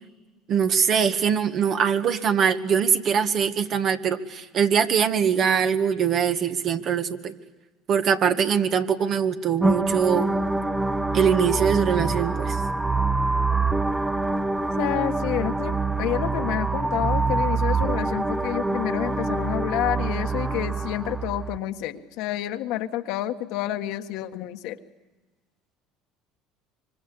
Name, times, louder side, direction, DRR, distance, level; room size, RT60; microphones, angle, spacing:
voice 1, 0.5-7.3 7.9-10.3 11.1-12.6, right 7 dB, 50° right, 7 dB, 1.9 m, -22 dB
sound 1, 9.6-21.6, right 3 dB, 10° right, 1.0 m, -25 dB
voice 2, 14.8-24.8, left 13 dB, 70° left, 7 dB, 1.6 m, -29 dB
25.5 x 25.0 x 8.4 m, 1.2 s
hypercardioid pair, 80°, 0 cm